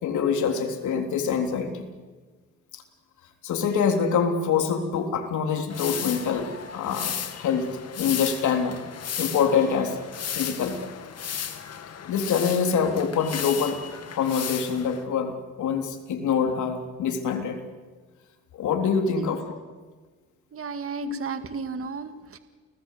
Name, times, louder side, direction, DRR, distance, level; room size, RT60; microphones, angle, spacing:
voice 1, 0.0-1.9 2.7-2.8 3.4-7.7 8.0-8.8 9.2-10.0 10.4-10.8 12.1-13.8 14.2-17.6 18.6-19.6 21.0-21.2, left 6 dB, 75° left, 5 dB, 3.5 m, -25 dB
sound 1, 5.7-15.0, left 8 dB, 55° left, 2.3 m, -35 dB
voice 2, 20.5-22.4, right 5 dB, 45° right, 9 dB, 1.9 m, -34 dB
29.5 x 19.0 x 8.5 m, 1.4 s
cardioid pair, 90°, 30 cm